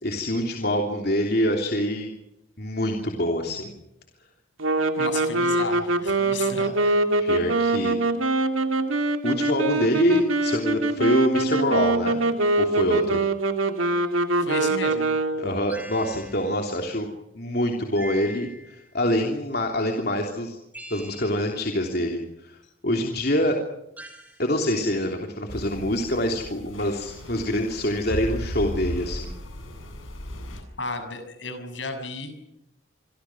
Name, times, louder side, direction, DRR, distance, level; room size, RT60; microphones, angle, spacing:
voice 1, 0.0-2.1 2.6-3.7 7.2-8.0 9.2-12.2 12.6-13.2 15.4-17.1 17.3-20.6 20.9-22.6 22.8-23.6 24.4-29.3, left 1 dB, 50° left, 2 dB, 3.2 m, -25 dB
sound 1, 4.6-15.6, right 2 dB, 90° right, 2.4 m, -24 dB
voice 2, 5.0-7.0 14.4-15.1 30.8-32.3, left 3 dB, 70° left, 8 dB, 6.6 m, -33 dB
sound 2, 15.7-16.7 18.0-18.9 20.7-21.6 24.0-24.5, right 1 dB, 10° right, 4.1 m, -42 dB
sound 3, 25.5-30.6, equal, 85° left, 7.7 m, -35 dB
27.0 x 24.5 x 6.2 m, 0.85 s
head